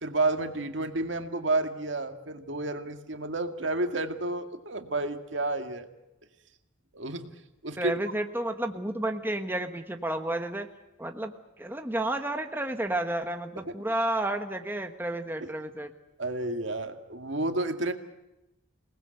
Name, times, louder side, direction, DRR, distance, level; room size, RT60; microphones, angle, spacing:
voice 1, 0.0-5.9 6.9-7.3 7.6-7.9 15.4-15.5 16.2-17.9, right 2 dB, 65° right, 6 dB, 2.0 m, -30 dB
voice 2, 7.8-10.7 11.0-15.9, right 1 dB, 10° right, 5 dB, 1.3 m, -31 dB
28.0 x 19.5 x 7.9 m, 0.96 s
head